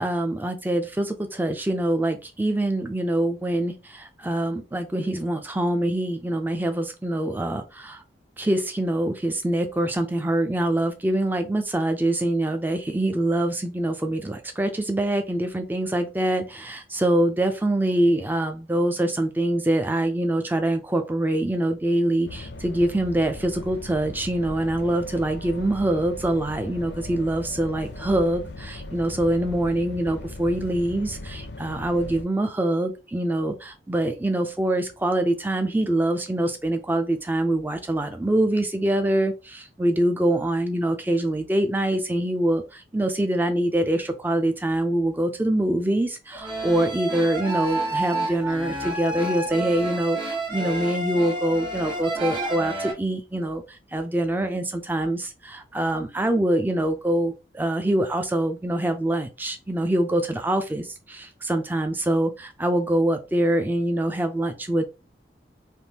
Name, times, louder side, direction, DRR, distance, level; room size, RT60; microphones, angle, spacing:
voice 1, 0.0-8.0 8.4-64.9, right 1 dB, 10° right, 6 dB, 0.4 m, -24 dB
sound 1, 22.3-32.2, left 2 dB, 70° left, 0.5 m, -38 dB
sound 2, 46.3-52.9, right 2 dB, 30° right, 1.1 m, -29 dB
3.4 x 2.6 x 2.8 m, 0.29 s
head